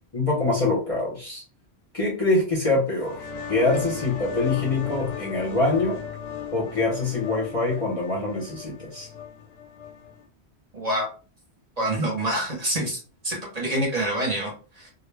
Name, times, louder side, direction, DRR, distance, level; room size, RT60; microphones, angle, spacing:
voice 1, 0.1-1.4 1.9-6.0 6.5-9.1, left 2 dB, 35° left, -3 dB, 0.7 m, -24 dB
sound 1, 2.9-10.2, left 7 dB, 80° left, 0.8 m, -36 dB
voice 2, 10.7-11.1 11.8-13.0 13.2-14.9, right 1 dB, 40° right, -2 dB, 0.9 m, -26 dB
2.2 x 2.1 x 3.2 m, 0.37 s
omnidirectional pair, 1.1 m